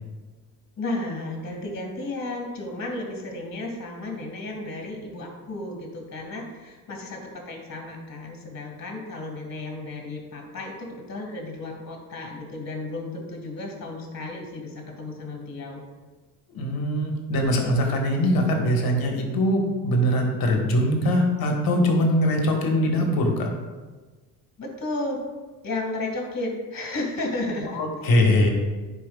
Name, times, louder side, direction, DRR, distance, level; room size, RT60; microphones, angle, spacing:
voice 1, 0.8-15.8 24.6-25.2 25.6-27.8, left 2 dB, 35° left, 0 dB, 2.1 m, -33 dB
voice 2, 16.5-23.5 27.7-28.5, equal, 50° left, 2 dB, 1.6 m, -22 dB
10.5 x 4.7 x 2.4 m, 1.3 s
supercardioid pair, 75°, 44 cm